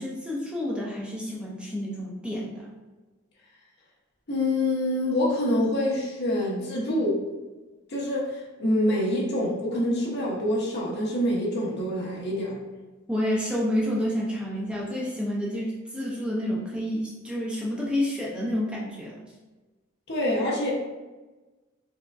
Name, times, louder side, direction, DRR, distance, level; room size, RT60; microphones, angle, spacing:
voice 1, 0.0-2.7 13.1-19.2, left 1 dB, 5° right, -5 dB, 0.6 m, -29 dB
voice 2, 4.3-7.2 7.9-12.6 20.1-20.7, left 1 dB, 55° left, -4 dB, 1.1 m, -26 dB
4.6 x 3.6 x 2.6 m, 1.2 s
head